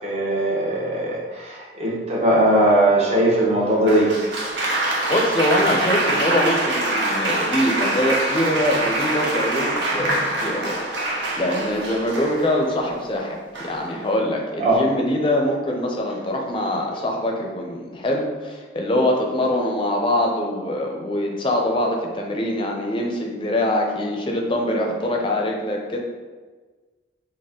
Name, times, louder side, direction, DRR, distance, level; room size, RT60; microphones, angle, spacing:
voice 1, 0.0-4.1 14.6-14.8, right 1 dB, 35° right, -4 dB, 0.8 m, -19 dB
Applause, 3.9-12.7 13.6-14.0, right 2 dB, 85° right, 0.8 m, -24 dB
voice 2, 5.1-13.4 13.6-26.0, left 1 dB, 30° left, 1 dB, 0.5 m, -23 dB
4.1 x 2.1 x 3.6 m, 1.4 s
head